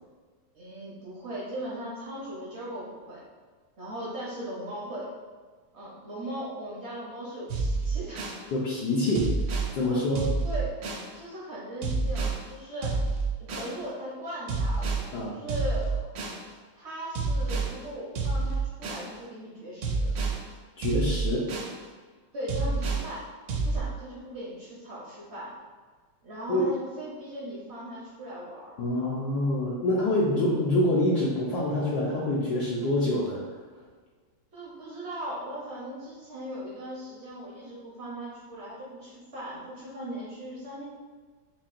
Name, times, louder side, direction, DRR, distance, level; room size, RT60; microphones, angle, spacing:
voice 1, 0.5-3.2 3.8-5.1 5.7-8.3 10.4-10.8 11.1-13.0 13.5-16.0 16.7-20.1 22.3-23.3 23.6-25.5 26.2-28.7 34.5-40.8, equal, 60° right, -6 dB, 0.7 m, -38 dB
sound 1, 7.5-8.4 9.1-9.7 10.2-11.1 11.8-12.4 12.8-13.7 14.5-15.1 15.5-16.4 17.1-17.7 18.2-19.1 19.8-20.4 20.8-21.7 22.5-23.1 23.5-23.8, right 3 dB, 75° right, 1.4 m, -28 dB
voice 2, 8.5-9.3 9.7-10.3 15.1-15.4 20.8-21.5 26.5-26.6 28.8-33.4, left 1 dB, 70° left, -6 dB, 1.0 m, -26 dB
5.6 x 2.2 x 2.5 m, 1.5 s
omnidirectional pair, 2.1 m